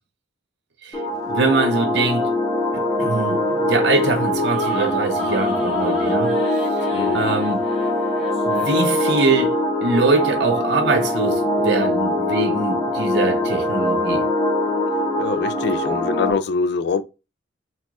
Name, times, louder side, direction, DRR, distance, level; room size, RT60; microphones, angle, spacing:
voice 1, 0.8-2.3 2.7-6.3 6.8-6.9 7.1-7.6 8.4-14.3, right 3 dB, 60° right, 0.7 m, -23 dB
sound 1, 0.9-16.3, left 1 dB, 20° left, 0.7 m, -22 dB
sound 2, 3.6-8.9, left 1 dB, ahead, 1.1 m, -36 dB
voice 2, 6.9-7.3 15.2-17.0, left 4 dB, 55° left, 0.3 m, -24 dB
4.2 x 2.3 x 2.9 m
head